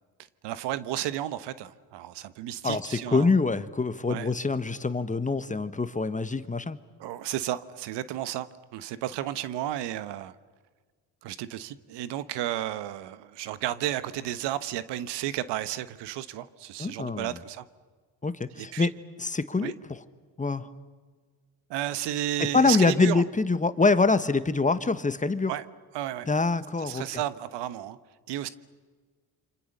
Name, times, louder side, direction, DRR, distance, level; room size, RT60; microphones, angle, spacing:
voice 1, 0.4-3.3 4.1-4.3 7.0-8.5 8.7-10.3 11.2-17.6 18.6-18.9 19.6-19.7 21.7-23.2 25.5-25.6 25.9-26.3 26.8-28.0 28.3-28.5, right 12 dB, 80° right, 14 dB, 1.2 m, -32 dB
voice 2, 2.6-6.8 16.8-17.4 18.2-18.9 19.2-20.0 20.4-20.7 22.4-25.5 26.3-27.0, left 3 dB, 20° left, 12 dB, 1.4 m, -25 dB
28.5 x 25.5 x 6.7 m, 1.5 s
supercardioid pair, 75°, 41 cm